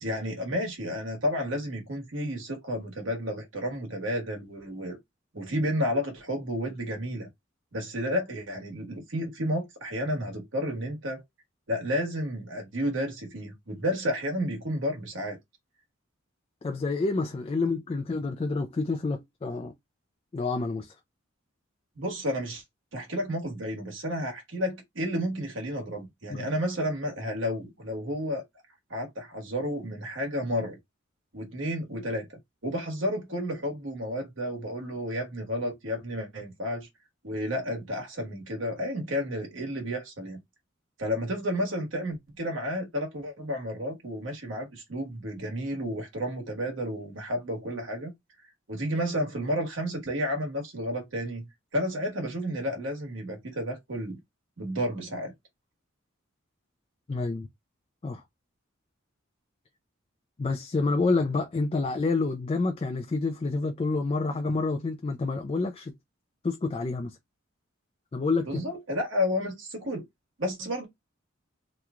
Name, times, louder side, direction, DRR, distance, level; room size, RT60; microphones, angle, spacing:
voice 1, 0.0-5.0 5.3-7.3 7.7-11.2 11.7-15.4 22.0-22.6 22.9-28.4 28.9-30.8 31.3-32.3 32.6-36.9 37.2-40.4 41.0-48.1 48.7-51.4 51.7-54.2 54.6-55.3 68.5-70.0 70.4-70.9, equal, 70° right, 1.3 m, -31 dB
voice 2, 16.6-19.7 20.3-20.9 26.3-26.5 57.1-57.5 58.0-58.2 60.4-65.9 66.4-67.2 68.1-68.6, left 3 dB, 30° left, 0.4 m, -28 dB
3.0 x 2.2 x 3.6 m
head